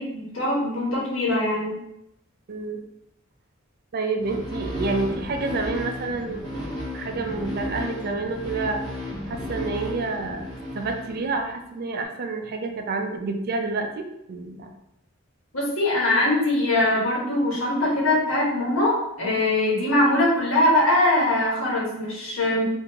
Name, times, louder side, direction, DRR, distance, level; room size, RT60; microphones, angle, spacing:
voice 1, 0.0-1.8 15.5-22.6, left 1 dB, 75° left, -4 dB, 1.2 m, -22 dB
voice 2, 2.5-2.8 3.9-6.4 6.9-8.8 9.3-10.4 10.7-14.7, right 3 dB, 50° right, 5 dB, 0.4 m, -28 dB
sound 1, 4.2-11.6, left 1 dB, 20° left, 1.0 m, -33 dB
3.5 x 2.5 x 2.9 m, 0.83 s
head